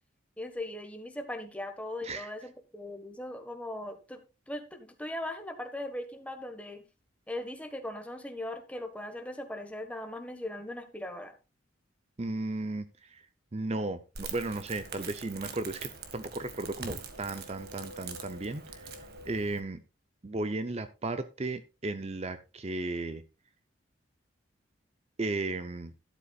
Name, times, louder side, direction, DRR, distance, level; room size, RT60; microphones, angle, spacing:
voice 1, 0.4-6.8 7.3-11.3, left 1 dB, 5° left, 6 dB, 1.4 m, -39 dB
voice 2, 12.2-13.2 13.5-18.9 19.3-19.8 20.2-23.2 25.2-25.9, right 2 dB, 35° right, 11 dB, 0.6 m, -35 dB
Crackle, 14.1-19.6, right 4 dB, 55° right, 1.8 m, -43 dB
12.5 x 11.5 x 2.4 m, 0.29 s
head